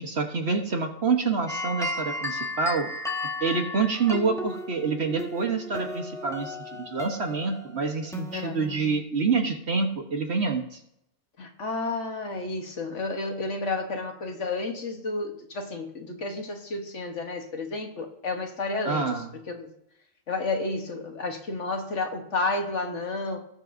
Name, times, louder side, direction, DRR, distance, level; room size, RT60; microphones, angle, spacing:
voice 1, 0.0-2.9 3.4-10.8 18.8-19.3, right 4 dB, 50° right, 3 dB, 1.4 m, -27 dB
sound 1, 1.5-9.0, left 2 dB, ahead, 1.1 m, -35 dB
voice 2, 11.4-19.7 20.3-23.4, left 3 dB, 55° left, 4 dB, 1.5 m, -31 dB
19.0 x 7.4 x 2.7 m, 0.77 s
omnidirectional pair, 1.5 m